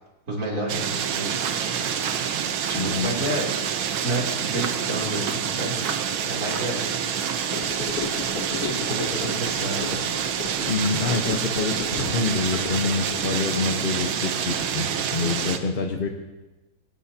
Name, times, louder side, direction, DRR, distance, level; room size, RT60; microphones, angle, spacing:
voice 1, 0.3-2.2 2.7-3.5 4.0-5.7 6.3-6.8 8.6-10.0, right 1 dB, 35° right, -2 dB, 3.4 m, -30 dB
sound 1, 0.7-15.6, right 8 dB, 75° right, 1.7 m, -27 dB
sound 2, 1.1-7.6, right 6 dB, 55° right, 1.3 m, -38 dB
voice 2, 2.7-3.1 10.7-16.1, left 4 dB, 40° left, 2 dB, 0.8 m, -26 dB
Gurgling / Car passing by / Sink (filling or washing), 7.5-13.2, left 7 dB, 65° left, 0.9 m, -35 dB
22.5 x 18.5 x 2.9 m, 1.1 s
omnidirectional pair, 2.3 m